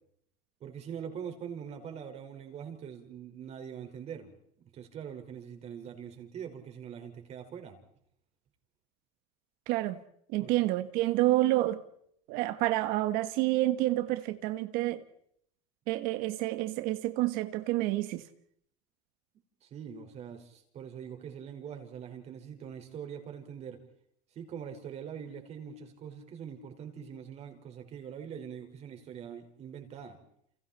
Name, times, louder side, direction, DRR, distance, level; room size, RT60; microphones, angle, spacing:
voice 1, 0.6-4.3 4.6-7.8 10.4-10.5 19.6-23.8 24.3-30.2, right 8 dB, 45° right, 4.8 m, -43 dB
voice 2, 9.7-10.0 10.3-11.8 12.3-15.0 15.9-18.2, right 17 dB, 70° right, 1.5 m, -28 dB
29.5 x 28.5 x 4.4 m
cardioid pair, 130°, 16 cm